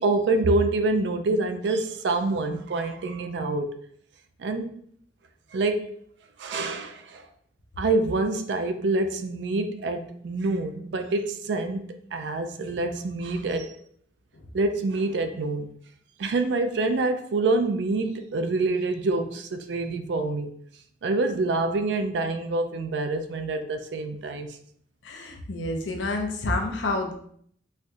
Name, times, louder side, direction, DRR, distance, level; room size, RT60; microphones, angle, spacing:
voice 1, 0.0-3.7 4.4-4.7 5.5-5.9 6.4-7.3 7.8-13.8 14.5-15.7 16.2-20.5 21.0-24.6, right 2 dB, 70° right, 0.4 m, -26 dB
voice 2, 25.0-27.1, left 2 dB, 85° left, 0.6 m, -28 dB
4.3 x 2.3 x 2.5 m
head